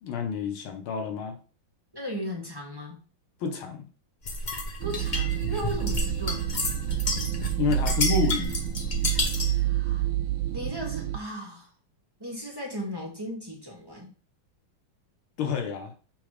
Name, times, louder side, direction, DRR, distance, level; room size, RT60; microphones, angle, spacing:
voice 1, 0.0-1.4 3.4-3.9 7.6-8.6 15.4-15.9, left 6 dB, 90° left, 5 dB, 2.0 m, -29 dB
voice 2, 1.9-3.0 4.8-6.5 9.4-10.1 10.5-11.7 12.2-14.1, equal, 10° right, -3 dB, 1.8 m, -36 dB
sound 1, 4.3-9.6, left 2 dB, 45° left, 0.6 m, -31 dB
sound 2, 4.8-11.2, right 14 dB, 80° right, 1.4 m, -28 dB
6.8 x 3.6 x 5.0 m, 0.38 s
omnidirectional pair, 2.2 m